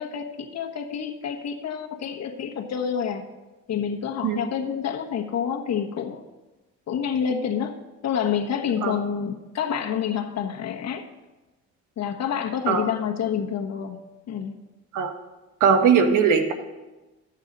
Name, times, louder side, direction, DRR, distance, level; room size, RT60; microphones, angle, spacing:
voice 1, 0.0-3.2 3.7-6.2 6.9-11.0 12.0-14.0 14.3-14.5 16.1-16.2, left 8 dB, 60° left, 2 dB, 1.3 m, -28 dB
voice 2, 15.6-16.5, right 6 dB, 85° right, 7 dB, 1.2 m, -19 dB
14.0 x 8.2 x 4.0 m, 1.1 s
cardioid pair, 90°, 30 cm